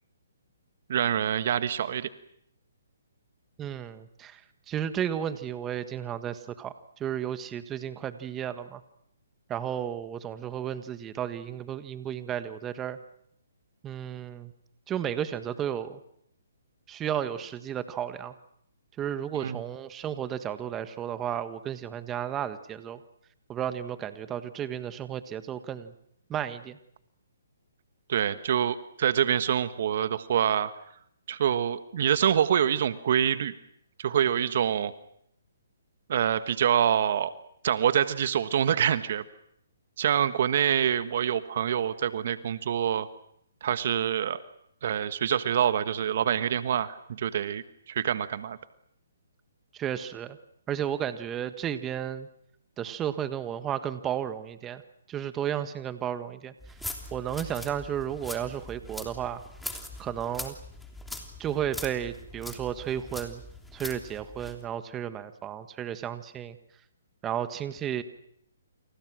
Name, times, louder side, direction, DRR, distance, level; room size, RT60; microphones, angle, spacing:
voice 1, 0.9-2.1 19.4-19.6 28.1-30.7 31.3-33.5 34.0-34.9 36.1-37.3 37.6-39.2 40.0-43.1 43.6-44.4 44.8-48.6, right 9 dB, 55° right, 12 dB, 1.3 m, -26 dB
voice 2, 3.6-8.8 9.5-13.0 13.8-14.5 14.9-16.0 16.9-18.3 19.0-23.0 23.5-25.9 26.3-26.8 49.7-50.4 50.7-52.3 52.8-54.8 55.1-56.8 57.1-59.4 60.0-60.5 61.4-63.4 63.7-66.6 67.2-68.0, right 9 dB, 15° right, 11 dB, 1.6 m, -33 dB
sound 1, 56.6-64.6, left 1 dB, 5° left, 3.2 m, -42 dB
29.5 x 27.5 x 6.3 m, 0.73 s
hypercardioid pair, 140°, 0 cm